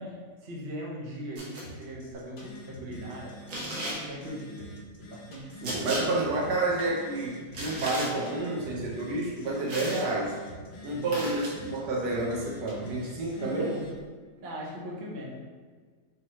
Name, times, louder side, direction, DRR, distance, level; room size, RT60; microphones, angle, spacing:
voice 1, 0.0-3.5 3.8-6.2 10.8-11.2 13.4-13.9 14.4-15.3, equal, 45° right, -3 dB, 0.8 m, -40 dB
sound 1, 1.4-1.6 3.5-4.0 5.6-6.0 7.5-8.1 9.7-10.1 11.1-11.5, right 1 dB, 65° right, 1.4 m, -34 dB
sound 2, 1.6-13.3, equal, 55° left, 1.2 m, -48 dB
Telephone, 2.1-14.1, left 1 dB, 90° left, 0.5 m, -49 dB
voice 2, 5.6-10.4 10.8-13.7, right 2 dB, 80° right, -2 dB, 1.4 m, -29 dB
3.7 x 3.0 x 4.1 m, 1.5 s
omnidirectional pair, 1.8 m